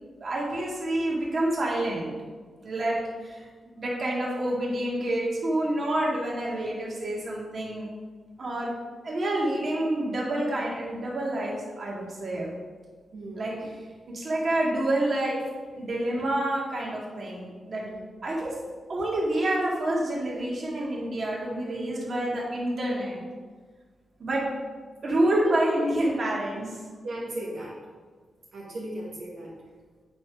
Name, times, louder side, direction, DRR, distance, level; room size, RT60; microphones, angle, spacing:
voice 1, 0.2-2.1 2.6-3.5 3.8-7.9 8.4-8.7 9.0-12.5 13.4-13.5 14.1-15.4 15.7-17.8 18.2-18.5 18.9-23.2 24.2-24.4 25.0-26.8, right 1 dB, 50° right, -4 dB, 2.1 m, -28 dB
voice 2, 13.1-13.7 17.8-18.3 25.4-25.5 25.8-26.1 27.0-27.8 28.5-29.5, right 1 dB, 75° right, -6 dB, 1.7 m, -37 dB
8.1 x 4.8 x 5.2 m, 1.5 s
wide cardioid pair, 110°, 0 cm